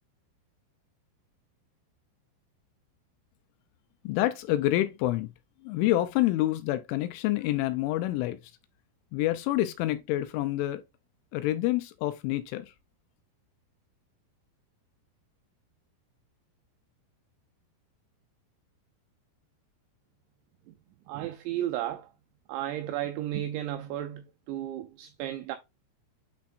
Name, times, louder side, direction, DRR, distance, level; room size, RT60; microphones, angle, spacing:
voice 1, 4.0-5.3 5.6-8.4 9.1-10.8 11.3-12.7, left 15 dB, 80° left, 2.9 m, -27 dB
voice 2, 21.1-22.1 22.5-25.6, right 12 dB, 90° right, 2.6 m, -34 dB
9.4 x 4.4 x 2.5 m
omnidirectional pair, 5.8 m